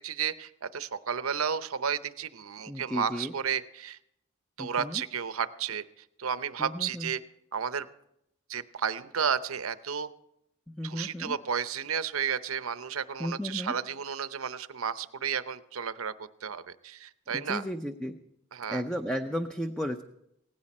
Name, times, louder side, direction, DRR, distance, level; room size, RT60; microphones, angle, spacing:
voice 1, 0.0-4.0 4.6-7.2 7.5-7.9 8.5-10.1 10.8-17.6 18.5-18.8, right 7 dB, 75° right, 13 dB, 0.7 m, -32 dB
voice 2, 2.7-3.3 4.6-5.0 6.6-7.1 10.7-11.3 13.2-13.7 17.3-18.2 18.7-20.0, equal, 5° left, 6 dB, 0.6 m, -34 dB
18.0 x 16.0 x 4.3 m, 0.78 s
head